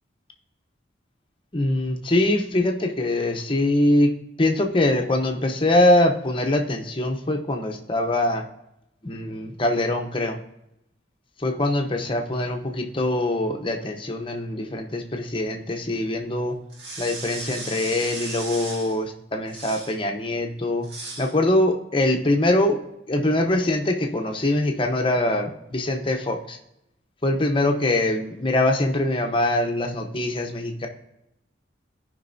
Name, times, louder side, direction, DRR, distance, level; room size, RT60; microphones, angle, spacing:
voice 1, 1.5-4.1 4.4-8.4 9.0-10.4 11.4-16.6 17.0-20.9 21.2-22.8 23.1-26.6 27.2-30.9, left 1 dB, 30° left, 3 dB, 1.0 m, -23 dB
sound 1, 16.7-19.0 19.5-20.0 20.8-21.3, right 2 dB, 65° right, 2.0 m, -36 dB
15.5 x 5.4 x 2.7 m, 0.85 s
head